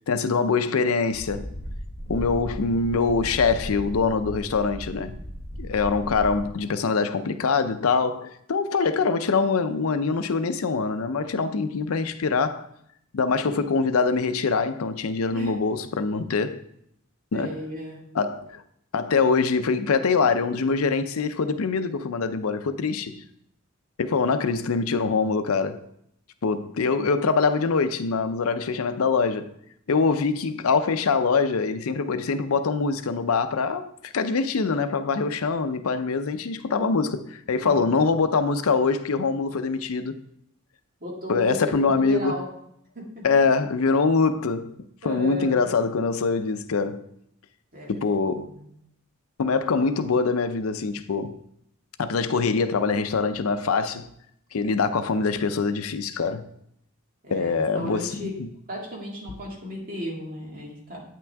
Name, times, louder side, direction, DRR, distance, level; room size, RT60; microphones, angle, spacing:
voice 1, 0.1-1.5 2.1-5.2 5.6-12.7 13.1-16.6 17.3-17.6 18.1-18.6 18.9-23.2 24.0-25.8 26.4-29.5 29.9-40.2 41.3-42.4 43.2-44.7 45.0-47.0 47.9-48.5 49.4-51.4 52.0-54.1 54.5-56.5 57.3-58.5, left 4 dB, 75° left, 0.5 m, -24 dB
sound 1, 1.1-6.4, equal, 35° left, 2.7 m, -36 dB
voice 2, 17.3-18.0 37.6-37.9 41.0-42.5 42.9-43.2 45.0-45.6 47.7-47.9 48.2-48.7 57.2-58.4 58.7-61.0, left 1 dB, 40° right, 2.0 m, -35 dB
8.9 x 6.0 x 3.4 m
head